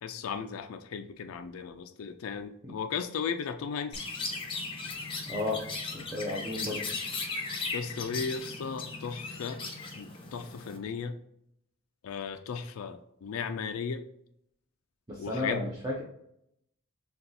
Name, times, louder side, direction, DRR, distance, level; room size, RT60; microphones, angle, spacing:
voice 1, 0.0-4.0 7.7-9.6 10.0-11.1 12.0-14.0 15.2-15.7, left 6 dB, 75° left, 8 dB, 0.4 m, -36 dB
Chirp tweet, 3.9-10.8, left 3 dB, 25° left, 0.8 m, -37 dB
voice 2, 5.3-5.6 5.9-6.9 15.1-16.0, left 2 dB, 15° right, -2 dB, 0.6 m, -33 dB
6.6 x 2.3 x 2.6 m, 0.75 s
head